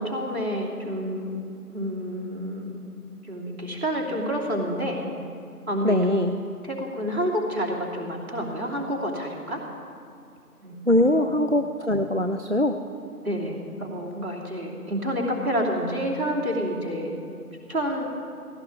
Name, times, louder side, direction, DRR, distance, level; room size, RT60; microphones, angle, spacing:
voice 1, 0.0-1.4 1.7-2.8 3.3-5.0 5.7-6.2 6.6-9.6 10.6-11.3 13.2-17.2 17.7-18.1, equal, 65° right, -3 dB, 3.1 m, -29 dB
voice 2, 5.8-6.3 10.9-12.8, left 1 dB, 50° right, 7 dB, 0.4 m, -22 dB
16.5 x 5.8 x 9.6 m, 2.5 s
figure-of-eight pair, 180°, 46 cm